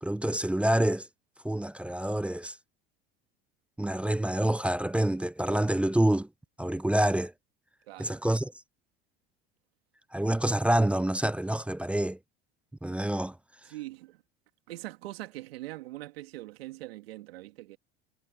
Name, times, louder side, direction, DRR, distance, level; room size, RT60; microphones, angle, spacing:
voice 1, 0.0-1.1 1.4-2.6 3.8-6.3 6.6-7.3 8.0-8.5 10.1-12.2 12.8-13.4, right 1 dB, 5° right, 0.3 m, -27 dB
voice 2, 7.9-8.2 13.6-14.2 14.7-17.8, right 17 dB, 85° right, 2.6 m, -42 dB
hypercardioid pair, 90°, 30 cm